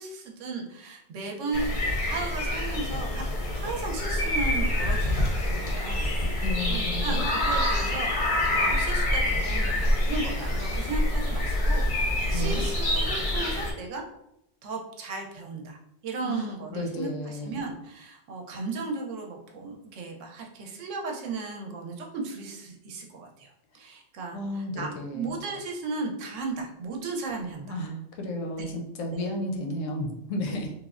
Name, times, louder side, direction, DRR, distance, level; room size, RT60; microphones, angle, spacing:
voice 1, 0.0-1.7 2.0-3.3 3.6-14.0 14.6-27.8 28.6-28.7 29.1-29.3 30.5-30.6, right 3 dB, 80° right, 1 dB, 0.9 m, -36 dB
sound 1, 1.5-13.7, left 1 dB, 55° left, 0.6 m, -26 dB
voice 2, 6.4-7.3 12.3-12.6 16.2-16.4 16.7-17.6 24.3-25.4 27.6-30.7, left 1 dB, 85° left, 3 dB, 0.9 m, -33 dB
3.1 x 2.0 x 2.4 m, 0.80 s
omnidirectional pair, 1.3 m